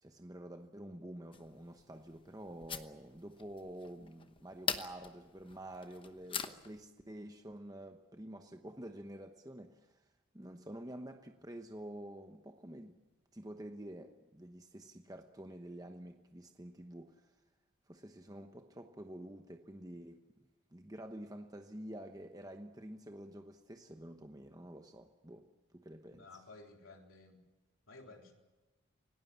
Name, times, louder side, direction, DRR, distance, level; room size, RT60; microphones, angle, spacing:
voice 1, 0.0-10.0 10.3-13.0 13.3-17.3 17.9-25.5 25.7-26.3, right 1 dB, 20° right, 5 dB, 1.0 m, -49 dB
sound 1, 1.3-6.8, left 6 dB, 25° left, 1.0 m, -43 dB
voice 2, 26.0-27.4 27.9-28.3, left 3 dB, 85° left, 1 dB, 3.7 m, -55 dB
28.0 x 18.5 x 7.4 m, 1.2 s
head